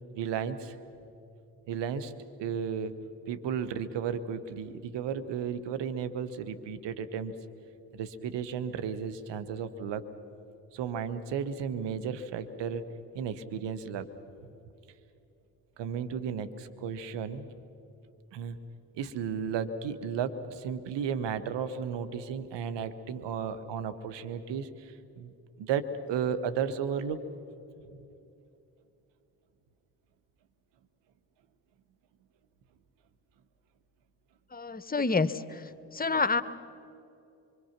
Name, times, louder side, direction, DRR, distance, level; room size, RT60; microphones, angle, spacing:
voice 1, 0.1-0.8 1.7-2.1 2.4-3.0 3.3-7.4 7.9-10.0 10.7-12.8 13.1-14.1 15.8-17.5 18.3-18.6 18.9-25.3 25.6-27.2, right 7 dB, 65° right, 11 dB, 1.3 m, -34 dB
voice 2, 34.5-35.6 35.9-36.4, left 4 dB, 20° left, 13 dB, 1.0 m, -28 dB
25.0 x 24.5 x 6.0 m, 2.7 s
hypercardioid pair, 40°, 45 cm